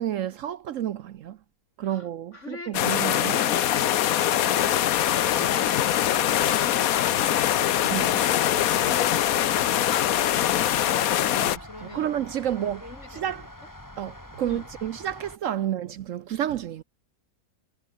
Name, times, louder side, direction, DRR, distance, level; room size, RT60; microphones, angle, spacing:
voice 1, 0.0-1.4 1.8-3.3 5.4-5.6 7.9-8.1 11.4-12.8 13.1-13.5 14.0-16.8, right 11 dB, 65° right, 0.9 m, -30 dB
voice 2, 1.8-2.8 8.8-12.1 12.6-13.5 14.5-14.6 15.6-15.7, left 2 dB, 50° left, 4.5 m, -43 dB
sound 1, 2.7-11.6, left 11 dB, 70° left, 1.2 m, -23 dB
sound 2, 4.6-15.4, left 1 dB, 10° left, 2.9 m, -44 dB
omnidirectional pair, 1.6 m